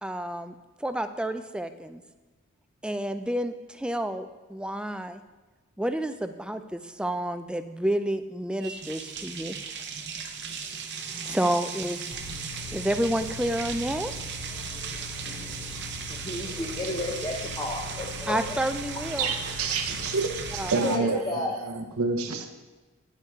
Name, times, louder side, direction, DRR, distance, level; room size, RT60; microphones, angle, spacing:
voice 1, 0.0-2.0 2.8-5.2 5.8-9.6 11.2-12.0 12.7-14.1 18.3-19.3 20.6-20.7 21.0-21.2, right 1 dB, 5° right, 9 dB, 0.3 m, -30 dB
sound 1, 8.6-21.0, right 6 dB, 55° right, 0.8 m, -37 dB
sound 2, 12.1-20.7, left 3 dB, 30° right, 1.3 m, -41 dB
voice 2, 16.1-18.4 20.8-21.6, left 2 dB, 20° left, -1 dB, 0.7 m, -32 dB
voice 3, 19.2-22.5, right 4 dB, 90° right, 5 dB, 0.8 m, -28 dB
9.5 x 9.0 x 3.6 m, 1.2 s
head